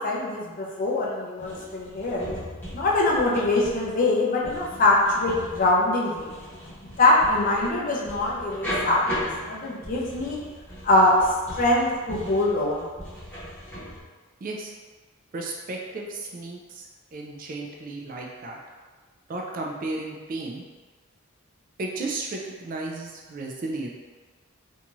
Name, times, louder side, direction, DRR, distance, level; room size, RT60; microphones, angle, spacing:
voice 1, 0.0-2.3 2.7-6.4 7.0-10.4 10.8-12.9, left 2 dB, 40° left, -4 dB, 0.5 m, -23 dB
sound 1, 1.4-14.0, equal, 10° left, 0.8 m, -38 dB
voice 2, 14.4-14.7 15.3-18.6 19.3-20.6 21.8-23.9, right 2 dB, 40° right, 0 dB, 0.3 m, -34 dB
2.6 x 2.3 x 3.0 m, 1.4 s
head